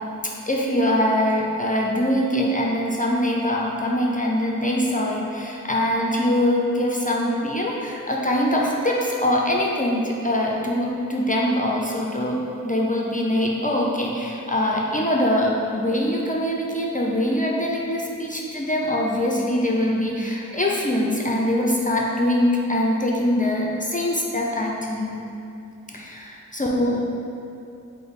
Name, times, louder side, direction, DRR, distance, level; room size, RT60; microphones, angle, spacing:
voice 1, 0.5-12.4 12.6-25.2 25.9-27.0, left 1 dB, 25° left, -2 dB, 0.4 m, -23 dB
4.9 x 2.1 x 4.0 m, 2.7 s
wide cardioid pair, 50°, 32 cm